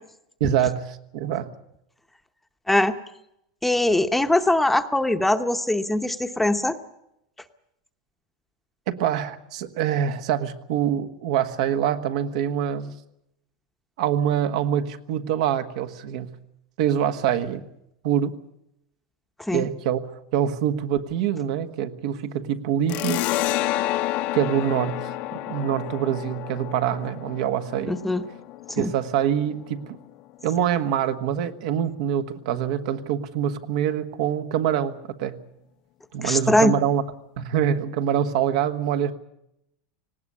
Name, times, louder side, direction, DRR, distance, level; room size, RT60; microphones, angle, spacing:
voice 1, 0.4-1.5 8.9-12.9 14.0-16.3 16.8-17.6 18.0-18.3 19.5-23.7 24.3-25.1 25.5-28.0 28.8-30.0 30.4-35.4 36.1-37.0 37.4-39.1, right 9 dB, 70° right, 8 dB, 1.5 m, -25 dB
voice 2, 3.6-6.8 19.5-19.6 27.9-28.2 28.8-28.9 36.2-36.7, left 1 dB, 5° left, 8 dB, 0.9 m, -21 dB
sound 1, 22.9-30.1, left 16 dB, 45° left, 0.8 m, -30 dB
19.0 x 17.0 x 9.7 m, 0.80 s
supercardioid pair, 140°, 4 cm